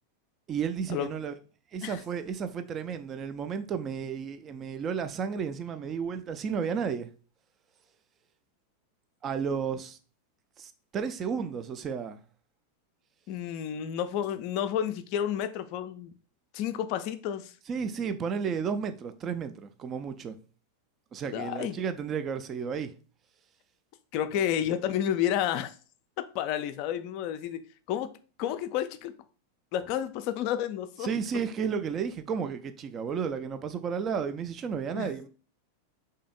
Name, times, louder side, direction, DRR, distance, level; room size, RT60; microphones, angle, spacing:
voice 1, 0.5-1.3 1.7-7.1 9.2-10.0 10.6-12.2 17.7-20.3 21.1-22.9 24.4-24.5 31.0-35.3, right 6 dB, 25° right, 0.4 m, -32 dB
voice 2, 13.3-16.1 16.5-17.5 21.3-21.8 24.1-25.7 26.3-27.6 27.9-28.1 28.4-29.1 29.7-31.1 35.0-35.1, left 10 dB, 45° left, 0.4 m, -30 dB
3.4 x 2.7 x 3.8 m
figure-of-eight pair, 90°, 0 cm